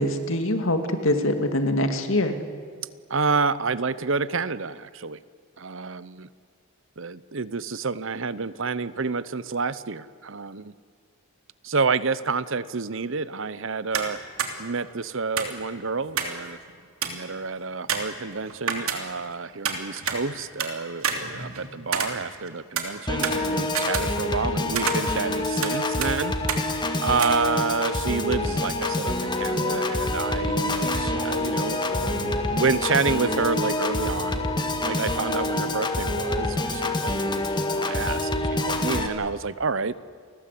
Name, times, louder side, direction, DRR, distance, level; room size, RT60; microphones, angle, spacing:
voice 1, 0.0-2.4, left 1 dB, 65° left, 7 dB, 2.4 m, -24 dB
voice 2, 3.1-5.2 5.6-6.3 7.0-10.7 11.6-14.2 14.6-16.6 17.0-26.3 27.0-34.4 34.8-37.5 37.7-39.9, right 4 dB, 60° right, 17 dB, 0.8 m, -29 dB
sound 1, 13.9-14.1 14.4-14.5 15.4-16.4 16.7-16.8 17.0-17.3 17.9-19.3 19.6-20.7 21.0-22.5 22.8-24.5 24.8-25.8 26.0-26.1 26.5-26.6 27.2-27.3, right 6 dB, 75° right, 3.0 m, -29 dB
Piano / Organ, 23.1-39.1, left 2 dB, 20° left, 1.7 m, -26 dB
29.5 x 20.5 x 8.5 m, 2.2 s
head